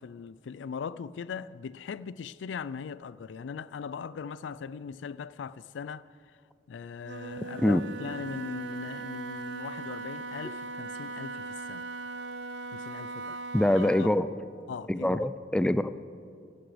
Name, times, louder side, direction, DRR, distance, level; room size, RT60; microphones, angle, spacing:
voice 1, 0.0-6.1 6.7-11.9 12.7-13.4 14.0-14.1 14.7-15.2, left 6 dB, 90° left, 0.4 m, -39 dB
Wind instrument woodwind instrument, 7.0-14.2, right 3 dB, 75° right, 0.9 m, -39 dB
voice 2, 13.5-14.3 14.9-15.9, left 1 dB, 5° left, 0.3 m, -24 dB
14.5 x 12.0 x 5.0 m
head